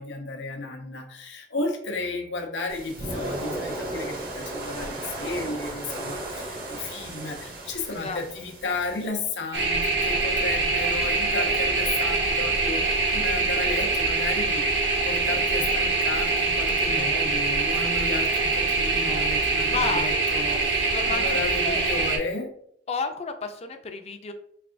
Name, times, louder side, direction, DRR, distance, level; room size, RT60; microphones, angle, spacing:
voice 1, 0.0-14.6 15.0-22.5, left 3 dB, 85° left, 3 dB, 0.7 m, -33 dB
sound 1, 2.7-9.1, right 1 dB, 55° right, 0.7 m, -35 dB
sound 2, 9.5-22.2, right 3 dB, 85° right, 0.9 m, -24 dB
voice 2, 19.7-20.2 20.9-21.8 22.9-24.3, left 4 dB, 35° left, 7 dB, 0.4 m, -31 dB
3.7 x 3.3 x 2.5 m, 0.68 s
head